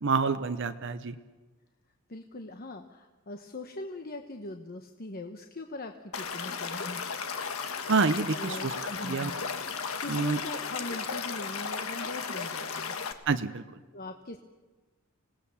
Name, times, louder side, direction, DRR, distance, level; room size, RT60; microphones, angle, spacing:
voice 1, 0.0-1.2 7.9-8.7 9.0-9.3 10.1-10.4 13.3-13.6, right 4 dB, 60° right, 9 dB, 0.8 m, -27 dB
voice 2, 2.1-7.0 8.3-9.4 10.0-12.9 13.9-14.4, left 2 dB, 45° left, 5 dB, 1.1 m, -41 dB
Stream / Liquid, 6.1-13.1, left 5 dB, 90° left, 1.5 m, -35 dB
26.5 x 18.0 x 7.1 m, 1.3 s
head